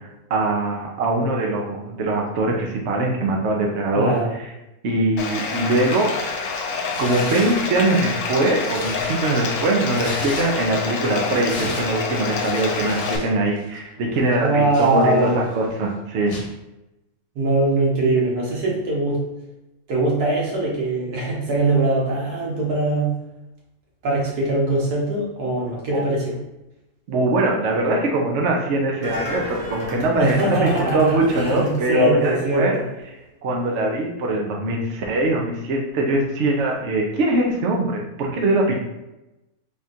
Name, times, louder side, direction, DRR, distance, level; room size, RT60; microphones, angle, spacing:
voice 1, 0.0-4.1 4.8-6.1 7.0-16.3 25.9-26.0 27.1-32.8 33.4-38.8, right 2 dB, 60° right, 0 dB, 0.9 m, -22 dB
voice 2, 4.0-4.3 14.4-15.4 17.4-19.2 19.9-23.1 24.0-26.3 30.2-32.7, right 2 dB, 85° right, -4 dB, 1.7 m, -21 dB
Bathtub (filling or washing), 5.2-13.2, left 4 dB, 80° left, 1.1 m, -27 dB
Tearing, 6.9-7.7 8.2-10.8 11.1-13.3 13.6-13.8 14.3-15.5 16.3-16.5, left 1 dB, 55° left, 1.2 m, -36 dB
sound 1, 29.0-32.8 33.2-33.3, left 1 dB, 20° left, 1.2 m, -35 dB
3.6 x 2.5 x 4.2 m, 0.93 s
omnidirectional pair, 1.6 m